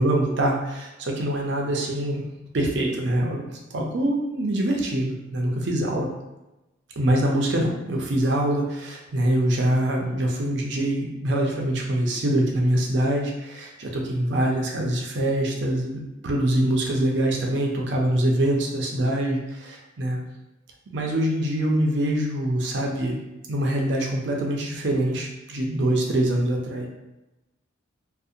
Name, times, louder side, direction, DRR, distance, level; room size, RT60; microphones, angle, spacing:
voice 1, 0.0-2.2 2.5-3.5 3.7-6.1 7.0-20.2 20.9-23.2 23.5-26.9, right 1 dB, 60° right, 0 dB, 0.5 m, -24 dB
2.7 x 2.1 x 2.4 m, 1.0 s
head